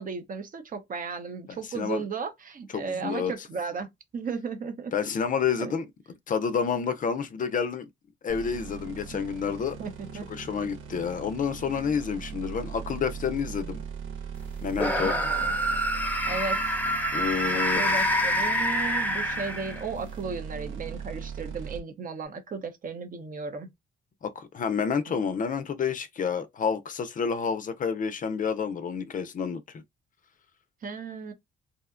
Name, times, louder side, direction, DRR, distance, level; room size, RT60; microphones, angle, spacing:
voice 1, 0.0-4.9 5.6-5.7 9.1-9.2 9.8-10.3 15.0-15.5 16.3-16.8 17.5-23.7 25.1-25.2 30.8-31.3, right 5 dB, 45° right, 0.7 m, -35 dB
voice 2, 1.5-2.0 2.7-3.3 4.9-5.9 6.3-7.9 8.2-9.8 10.3-13.8 14.6-15.1 17.1-18.0 24.2-29.8, left 6 dB, 40° left, 0.4 m, -29 dB
sound 1, 8.3-21.8, right 6 dB, 80° right, 0.7 m, -40 dB
sound 2, 14.7-20.0, equal, 10° left, 0.7 m, -26 dB
2.7 x 2.1 x 2.4 m
cardioid pair, 90°, 20 cm